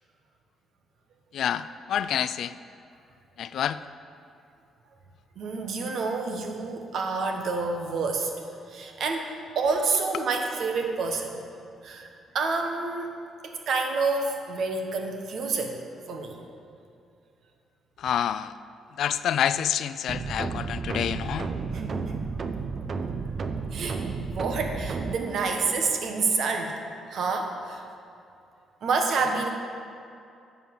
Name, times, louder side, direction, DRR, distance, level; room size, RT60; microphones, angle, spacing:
voice 1, 1.3-2.5 3.4-3.8 18.0-18.5 19.0-21.5, left 9 dB, 70° left, 14 dB, 0.3 m, -28 dB
voice 2, 5.4-11.4 11.8-12.1 12.3-13.2 13.4-15.8 16.1-16.4 21.5-22.3 23.7-26.7 27.1-27.8 28.8-29.5, right 4 dB, 65° right, 3 dB, 1.2 m, -28 dB
sound 1, 20.1-25.2, right 4 dB, 45° right, 0.6 m, -32 dB
9.9 x 5.5 x 7.7 m, 2.5 s
cardioid pair, 90°, 0 cm